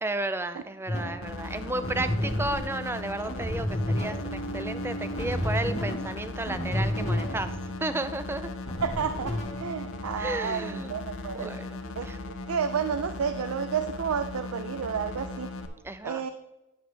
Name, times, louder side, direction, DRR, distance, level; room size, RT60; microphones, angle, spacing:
voice 1, 0.0-7.5 7.8-8.5 10.2-10.9 11.3-12.2 15.8-16.3, right 2 dB, 10° right, 11 dB, 0.3 m, -33 dB
sound 1, 0.9-10.4, equal, 30° left, 1.5 m, -32 dB
sound 2, 1.2-15.7, left 3 dB, 70° left, 0.8 m, -38 dB
voice 2, 8.8-11.6 12.0-15.5 16.0-16.3, right 7 dB, 75° right, 10 dB, 0.4 m, -31 dB
10.0 x 7.0 x 3.3 m, 1.0 s
head